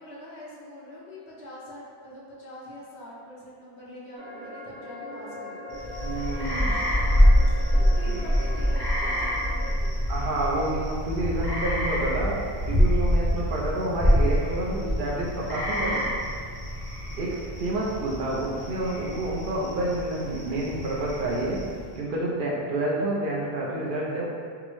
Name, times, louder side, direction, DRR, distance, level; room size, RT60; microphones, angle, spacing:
voice 1, 0.0-5.8 6.4-10.1, equal, 85° left, -6 dB, 1.0 m, -44 dB
sound 1, 4.2-9.7, left 1 dB, 85° right, 1.0 m, -39 dB
sound 2, 5.7-21.9, equal, 30° left, 0.6 m, -26 dB
voice 2, 6.0-6.8 10.1-12.4 12.7-16.0 17.2-21.6 22.0-24.3, right 2 dB, 60° right, -4 dB, 0.7 m, -29 dB
3.5 x 2.0 x 3.1 m, 2.1 s
omnidirectional pair, 1.1 m